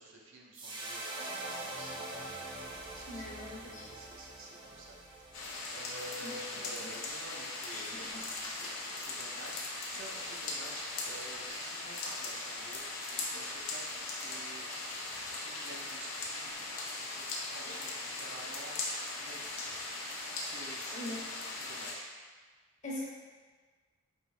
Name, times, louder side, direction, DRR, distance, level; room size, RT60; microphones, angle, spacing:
voice 1, 0.0-2.3 2.9-5.0 5.3-5.4 5.7-12.8 13.3-19.4 19.7-19.9 20.4-21.2 21.5-22.1, right 2 dB, 65° right, -2 dB, 0.7 m, -50 dB
sound 1, 0.5-6.9, right 2 dB, 20° right, 0.4 m, -44 dB
voice 2, 3.1-3.9 6.2-6.5 6.8-6.9 7.7-8.3 20.9-21.2 22.8-23.0, left 1 dB, 35° left, -5 dB, 0.9 m, -42 dB
sound 2, 5.3-21.9, left 2 dB, 80° left, 0.7 m, -39 dB
4.5 x 2.9 x 3.3 m, 1.4 s
head